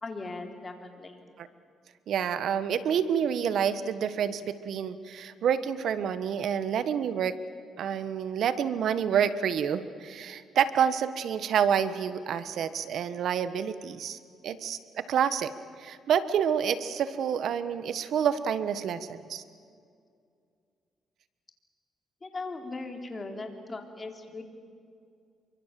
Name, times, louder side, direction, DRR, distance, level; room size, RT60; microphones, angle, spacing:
voice 1, 0.0-1.2 22.2-24.4, left 3 dB, 30° left, 5 dB, 3.7 m, -39 dB
voice 2, 2.1-7.3 7.8-14.2 14.4-15.5 15.8-19.4, right 8 dB, 70° right, 13 dB, 1.3 m, -28 dB
27.5 x 24.0 x 7.7 m, 2.3 s
cardioid pair, 90°, 0 cm